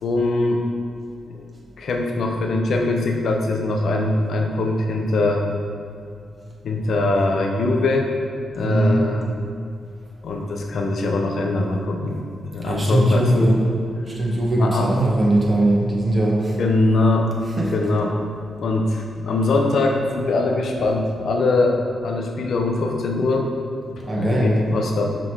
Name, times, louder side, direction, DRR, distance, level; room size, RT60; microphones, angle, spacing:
voice 1, 0.0-0.7 1.8-5.5 6.6-8.1 8.5-9.3 10.2-12.2 12.5-13.5 14.6-14.9 16.6-17.3 17.7-18.2 18.6-23.5 24.2-25.2, left 2 dB, 70° left, 2 dB, 0.8 m, -22 dB
voice 2, 8.6-9.1 12.6-13.6 14.1-16.6 17.6-17.7 24.0-24.6, right 1 dB, 35° right, -4 dB, 1.4 m, -20 dB
5.9 x 3.7 x 4.8 m, 2.5 s
cardioid pair, 55°, 0 cm